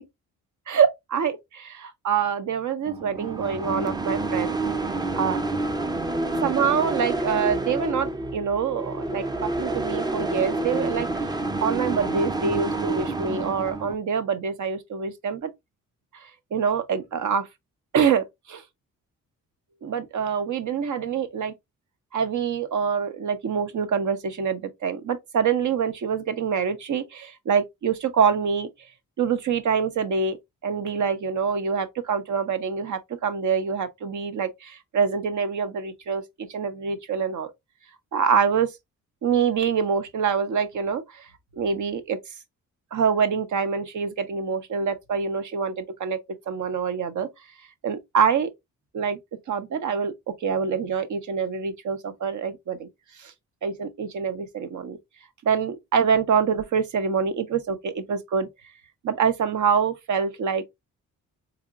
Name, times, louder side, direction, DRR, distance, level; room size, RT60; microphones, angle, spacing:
voice 1, 0.7-4.6 5.2-5.4 6.4-15.5 16.5-17.5 17.9-18.6 19.8-21.5 22.1-28.7 29.2-30.4 30.6-37.5 38.1-38.7 39.2-41.3 41.5-42.2 42.9-46.2 46.5-47.3 47.8-48.5 48.9-49.2 49.5-52.9 53.2-53.3 53.6-55.0 55.4-58.5 59.0-60.6, right 6 dB, 60° right, 0.8 m, -25 dB
sound 1, 2.9-13.9, right 2 dB, 10° right, 0.5 m, -28 dB
4.2 x 3.0 x 2.4 m
cardioid pair, 75°, 33 cm